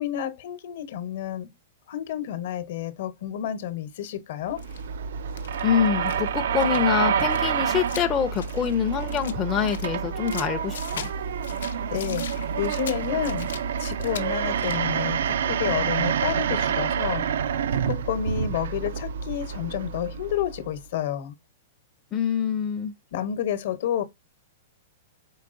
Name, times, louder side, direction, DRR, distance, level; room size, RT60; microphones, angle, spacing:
voice 1, 0.0-1.5 1.9-4.6 11.5-13.5 13.8-17.3 17.7-21.3 23.1-24.0, left 10 dB, 60° left, 0.9 m, -30 dB
sound 1, 4.5-20.8, right 7 dB, 75° right, 0.3 m, -28 dB
sound 2, 4.6-4.9 5.3-6.3 6.6-6.8 7.2-9.4 9.7-11.2 11.4-13.6 13.9-14.3 14.5-14.9, left 8 dB, 90° left, 0.6 m, -40 dB
voice 2, 5.6-11.1 22.1-22.9, left 8 dB, 20° left, 0.4 m, -25 dB
4.6 x 3.7 x 2.5 m
hypercardioid pair, 145°, 0 cm